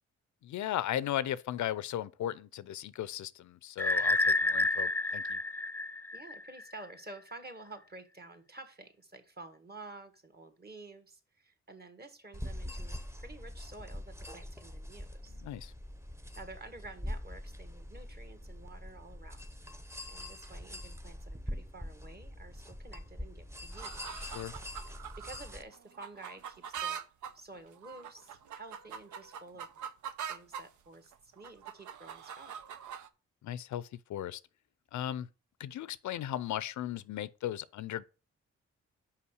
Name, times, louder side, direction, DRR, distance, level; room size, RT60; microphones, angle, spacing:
voice 1, 0.4-5.4 15.4-15.7 24.3-24.5 33.4-34.4 34.9-35.3 35.6-38.0, left 11 dB, 80° left, 0.5 m, -36 dB
sound 1, 3.8-6.6, left 2 dB, 10° left, 0.3 m, -29 dB
voice 2, 6.1-15.4 16.4-19.5 20.1-24.0 24.9-27.0 27.3-29.7 30.3-32.6, right 2 dB, 35° right, 1.8 m, -51 dB
sound 2, 12.3-25.6, left 1 dB, 10° right, 0.9 m, -44 dB
sound 3, 23.7-30.7 31.1-33.1, right 8 dB, 85° right, 0.7 m, -43 dB
5.7 x 5.0 x 6.3 m
cardioid pair, 60°, 29 cm